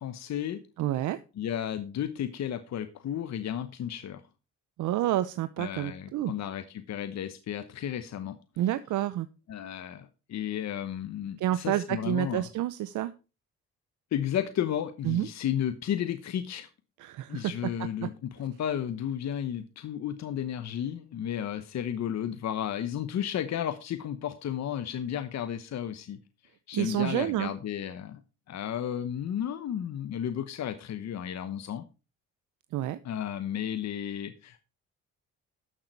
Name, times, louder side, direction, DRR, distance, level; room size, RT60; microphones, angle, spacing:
voice 1, 0.0-0.6 1.4-4.2 5.6-8.4 9.5-12.5 14.1-16.7 17.3-26.2 26.7-28.2 28.5-31.8 33.0-34.6, left 10 dB, 60° left, 10 dB, 1.0 m, -33 dB
voice 2, 0.8-1.2 4.8-6.3 8.6-9.3 11.4-13.1 15.0-15.3 17.0-17.4 26.7-27.5 32.7-33.0, right 13 dB, 80° right, 13 dB, 0.7 m, -29 dB
12.5 x 6.7 x 4.5 m, 0.31 s
cardioid pair, 90°, 30 cm